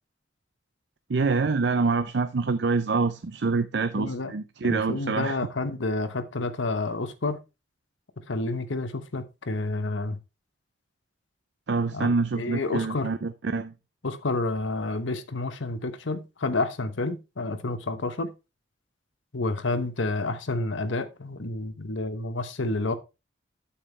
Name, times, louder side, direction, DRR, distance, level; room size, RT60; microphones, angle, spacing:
voice 1, 1.1-5.4 11.7-13.7, right 4 dB, 60° right, 0.5 m, -26 dB
voice 2, 3.9-4.3 4.6-7.4 8.3-10.2 11.9-12.1 12.3-13.1 14.0-18.3 19.3-23.0, left 2 dB, 75° left, 1.0 m, -29 dB
8.6 x 7.3 x 3.2 m
head